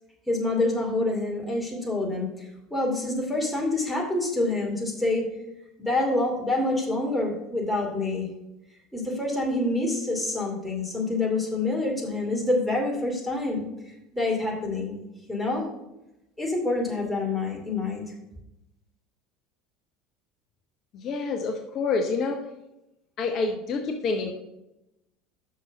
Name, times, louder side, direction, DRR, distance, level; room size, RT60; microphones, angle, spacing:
voice 1, 0.3-5.3 5.8-8.3 8.9-13.7 14.1-15.0 15.3-15.6 16.4-18.1, left 2 dB, ahead, -2 dB, 2.6 m, -27 dB
voice 2, 20.9-22.4 23.2-24.3, left 4 dB, 45° left, 4 dB, 0.7 m, -27 dB
6.1 x 5.7 x 6.3 m, 0.90 s
figure-of-eight pair, 70°, 0 cm